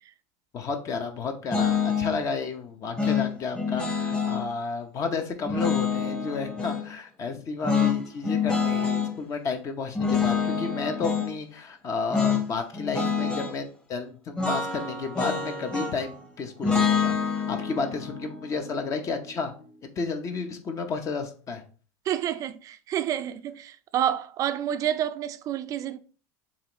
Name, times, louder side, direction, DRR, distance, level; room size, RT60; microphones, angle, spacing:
voice 1, 0.5-19.5 20.0-21.6, left 4 dB, 35° left, 0.8 m, -32 dB
sound 1, 1.5-2.2 3.0-4.4 5.5-6.9 7.6-9.1 10.0-11.3 12.1-12.5 12.7-13.5 14.4-16.1 16.6-19.7, left 6 dB, 10° left, 1.0 m, -27 dB
voice 2, 22.1-26.0, right 10 dB, 40° right, 0.4 m, -29 dB
7.0 x 2.5 x 3.0 m
supercardioid pair, 110°, 9 cm